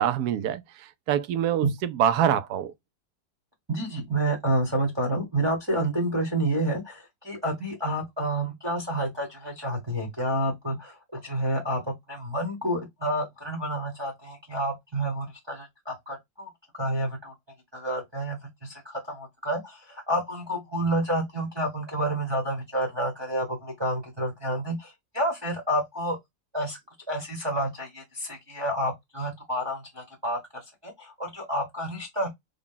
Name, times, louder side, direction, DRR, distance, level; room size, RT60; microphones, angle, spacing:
voice 1, 0.0-2.7, right 10 dB, 70° right, 1.0 m, -25 dB
voice 2, 3.7-17.3 17.7-26.2 26.5-26.8 27.1-30.4 30.8-32.3, right 1 dB, 20° right, 0.8 m, -29 dB
3.6 x 2.2 x 3.7 m
omnidirectional pair, 1.9 m